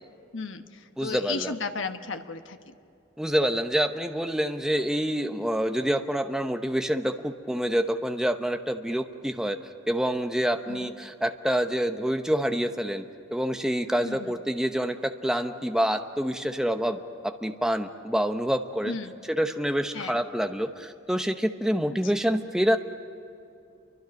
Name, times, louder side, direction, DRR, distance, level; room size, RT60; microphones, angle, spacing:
voice 1, 0.3-0.6 1.0-2.7 10.7-10.9 14.0-14.3 18.9-19.1 19.9-20.2, left 4 dB, 80° left, 7 dB, 1.2 m, -34 dB
voice 2, 1.0-1.5 3.2-9.6 9.9-13.0 13.3-19.0 19.2-22.8, equal, 5° right, 6 dB, 0.8 m, -27 dB
29.0 x 24.0 x 5.3 m, 2.7 s
head